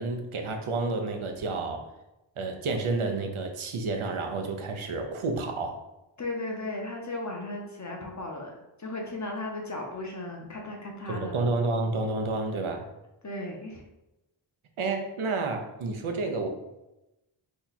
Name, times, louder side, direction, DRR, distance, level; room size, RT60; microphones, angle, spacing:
voice 1, 0.0-1.9 2.4-5.8 11.1-12.9 14.8-16.5, right 3 dB, 80° right, 4 dB, 0.6 m, -30 dB
voice 2, 6.2-11.5 13.2-13.8, left 2 dB, 35° left, 0 dB, 0.7 m, -36 dB
2.9 x 2.2 x 3.9 m, 0.95 s
wide cardioid pair, 45°, 49 cm